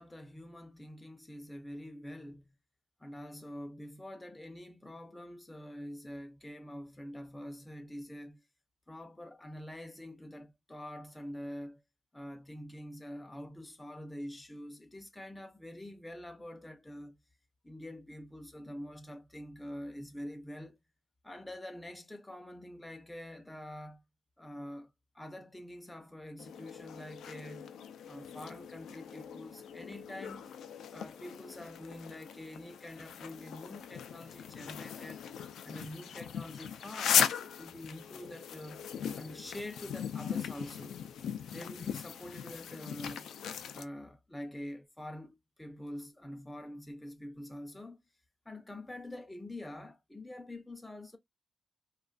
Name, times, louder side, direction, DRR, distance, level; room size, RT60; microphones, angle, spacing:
voice 1, 0.0-2.5 3.0-8.4 8.9-11.8 12.1-17.2 17.6-20.8 21.2-24.0 24.4-27.7 28.0-30.5 30.9-35.2 35.6-38.8 39.2-41.0 41.5-43.3 43.7-48.0 48.5-51.2, left 1 dB, 10° left, 0.5 m, -46 dB
sound 1, 26.4-43.8, left 8 dB, 80° left, 0.3 m, -38 dB
2.4 x 2.3 x 2.3 m
cardioid pair, 80°, 0 cm